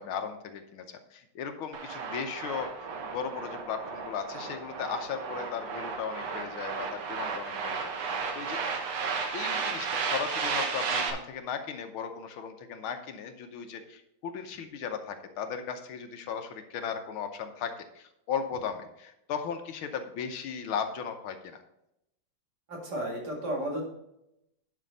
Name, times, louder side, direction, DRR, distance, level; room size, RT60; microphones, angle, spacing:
voice 1, 0.0-2.7 3.0-8.6 9.3-21.6, left 7 dB, 75° left, 7 dB, 1.6 m, -36 dB
sound 1, 1.7-11.1, right 5 dB, 85° right, 2.2 m, -34 dB
voice 2, 22.7-23.9, right 1 dB, 50° right, -1 dB, 2.7 m, -33 dB
11.0 x 5.7 x 4.0 m, 0.84 s
omnidirectional pair, 2.4 m